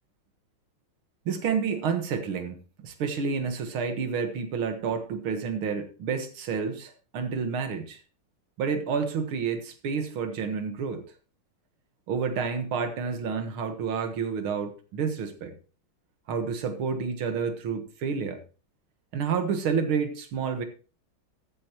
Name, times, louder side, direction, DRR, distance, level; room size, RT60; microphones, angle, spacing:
voice 1, 1.3-8.0 8.6-11.0 12.1-15.6 16.3-18.3 19.1-20.6, right 6 dB, 85° right, 7 dB, 2.3 m, -29 dB
14.0 x 10.5 x 3.0 m, 0.36 s
omnidirectional pair, 2.2 m